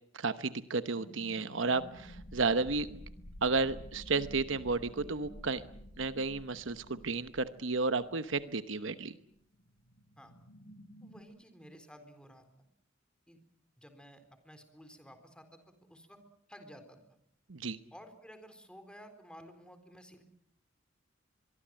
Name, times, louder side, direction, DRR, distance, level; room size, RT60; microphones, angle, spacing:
voice 1, 0.1-3.0 3.4-5.6 6.0-9.2 17.5-17.8, right 3 dB, 70° right, 12 dB, 1.0 m, -32 dB
sound 1, 1.0-11.2, equal, 75° left, 3.7 m, -51 dB
voice 2, 11.0-12.7 13.3-13.4 13.8-16.2 16.5-17.2 17.9-20.2, equal, 5° left, 8 dB, 4.0 m, -54 dB
24.0 x 23.5 x 7.7 m, 0.74 s
head